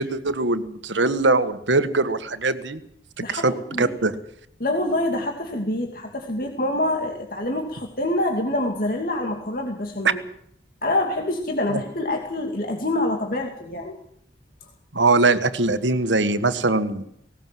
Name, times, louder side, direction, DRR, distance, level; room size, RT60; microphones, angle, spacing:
voice 1, 0.0-2.8 3.3-3.5 3.8-4.1 11.7-11.8 14.9-17.0, right 3 dB, 90° right, 11 dB, 1.6 m, -21 dB
voice 2, 3.2-4.0 4.6-10.2 10.8-14.0, left 1 dB, 50° left, 2 dB, 2.6 m, -26 dB
18.5 x 18.5 x 7.7 m, 0.71 s
head